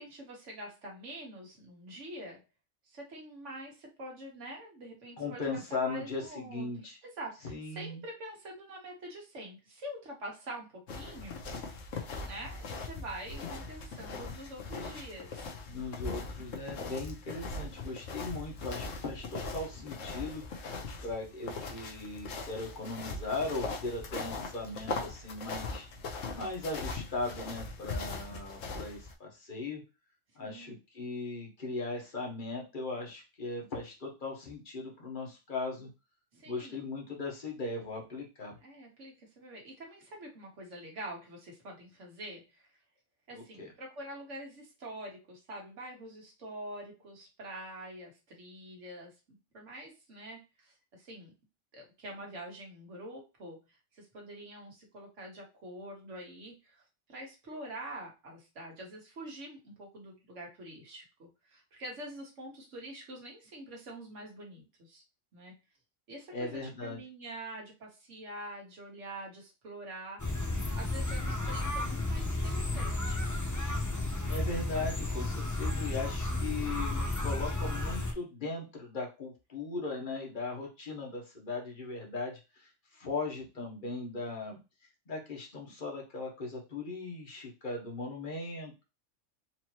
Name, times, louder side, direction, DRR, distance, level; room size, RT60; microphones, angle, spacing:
voice 1, 0.0-2.4 2.8-6.7 7.0-11.4 12.2-15.5 30.4-30.8 36.3-36.8 38.6-42.7 43.3-49.1 49.5-51.3 51.7-65.0 65.3-65.5 66.1-70.2 70.7-73.3, right 1 dB, 75° right, 0 dB, 1.6 m, -45 dB
voice 2, 5.2-7.0 7.4-8.0 15.7-29.8 30.3-35.9 36.4-38.6 43.3-43.7 66.3-67.0 74.2-84.6 85.1-88.8, left 3 dB, 45° left, -1 dB, 1.3 m, -38 dB
sound 1, 10.9-29.1, left 3 dB, 90° left, 1.2 m, -40 dB
sound 2, 70.2-78.1, left 2 dB, 25° left, 0.4 m, -32 dB
4.4 x 2.9 x 2.9 m, 0.28 s
omnidirectional pair, 1.3 m